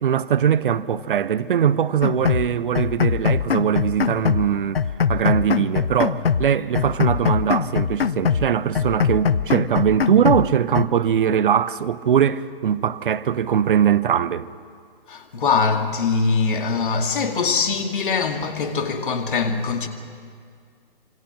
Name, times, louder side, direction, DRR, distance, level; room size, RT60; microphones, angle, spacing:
voice 1, 0.0-4.8 5.1-14.5, right 8 dB, 60° right, 0.9 m, -21 dB
sound 1, 2.0-2.5 2.7-4.5 4.7-6.5 6.7-8.5 8.7-10.5 10.7-10.9, left 6 dB, 80° left, 0.9 m, -22 dB
voice 2, 15.1-19.9, left 5 dB, 60° left, 2.4 m, -22 dB
27.0 x 24.5 x 6.1 m
figure-of-eight pair, 130°, 29 cm